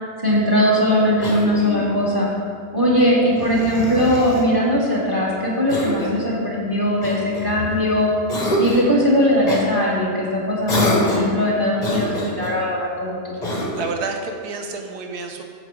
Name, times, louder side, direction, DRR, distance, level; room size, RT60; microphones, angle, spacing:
voice 1, 0.2-2.3 2.7-8.1 8.6-13.4, equal, 15° right, -5 dB, 1.9 m, -19 dB
Cough, 1.2-2.0 3.3-4.5 5.7-6.2 7.0-7.8 8.3-8.9 9.5-9.7 10.7-11.4 11.8-12.6 13.4-14.0, left 1 dB, 30° left, 1.1 m, -25 dB
voice 2, 13.5-15.4, right 4 dB, 75° right, 4 dB, 1.4 m, -30 dB
7.8 x 7.5 x 5.0 m, 2.2 s
omnidirectional pair, 1.7 m